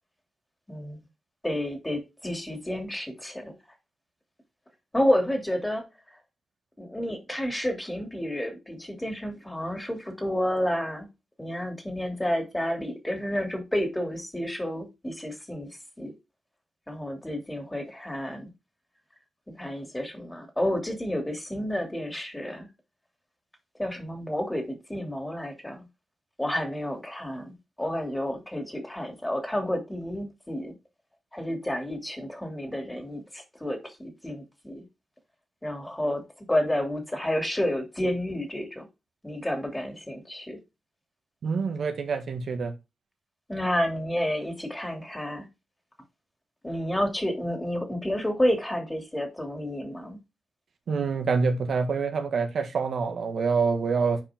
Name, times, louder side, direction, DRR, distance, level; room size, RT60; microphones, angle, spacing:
voice 1, 0.7-1.0 1.4-3.5 4.9-5.9 6.8-11.1 11.4-15.7 16.0-16.1 16.9-18.5 19.6-22.7 23.8-25.8 26.4-30.7 31.3-34.8 35.6-38.9 39.2-40.6 43.5-45.5 46.6-50.2, left 1 dB, 15° left, 2.8 m, -30 dB
voice 2, 41.4-42.7 50.9-54.2, right 5 dB, 75° right, 1.7 m, -26 dB
8.5 x 4.7 x 3.6 m
cardioid pair, 70°, 0 cm